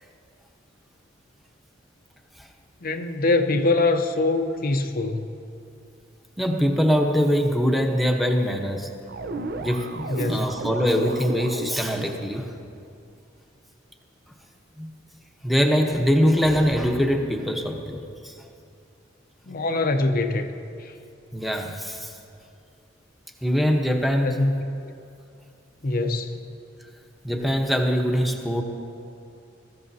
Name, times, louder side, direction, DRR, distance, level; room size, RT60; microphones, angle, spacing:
voice 1, 2.8-5.3 10.1-10.5 19.5-20.5 20.8-20.9 24.2-24.9 25.8-26.4, left 2 dB, 50° left, 6 dB, 0.7 m, -23 dB
voice 2, 6.4-8.9 9.6-12.5 14.8-14.9 15.4-18.4 21.3-22.2 23.4-24.4 27.2-28.6, equal, ahead, 2 dB, 1.0 m, -23 dB
sound 1, 9.1-12.2, right 2 dB, 50° right, 0.7 m, -33 dB
22.0 x 14.0 x 2.8 m, 2.5 s
head